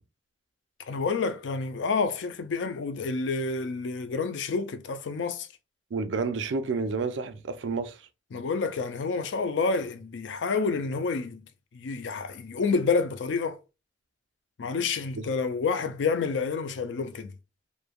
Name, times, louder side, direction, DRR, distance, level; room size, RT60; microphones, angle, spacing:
voice 1, 0.9-5.5 8.3-11.5 11.7-13.6 14.6-17.3, left 4 dB, 85° left, 0.4 m, -29 dB
voice 2, 5.9-8.0 15.2-15.3, right 4 dB, 85° right, 0.4 m, -30 dB
3.1 x 2.1 x 2.3 m
head